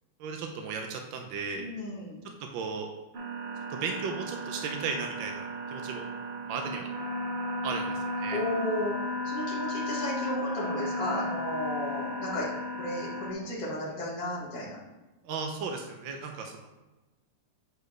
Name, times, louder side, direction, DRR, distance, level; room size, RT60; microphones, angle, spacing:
voice 1, 0.2-1.6 2.5-2.9 3.7-5.4 5.7-6.1 6.5-6.9 7.6-8.4 15.2-16.7, right 5 dB, 85° right, 3 dB, 1.5 m, -35 dB
voice 2, 1.6-2.2 8.3-9.0 9.2-12.5 12.8-14.8, left 1 dB, 50° left, -7 dB, 2.3 m, -34 dB
sound 1, 3.1-13.3, left 1 dB, 55° right, 0.5 m, -34 dB
8.9 x 4.6 x 3.3 m, 1.1 s
omnidirectional pair, 2.1 m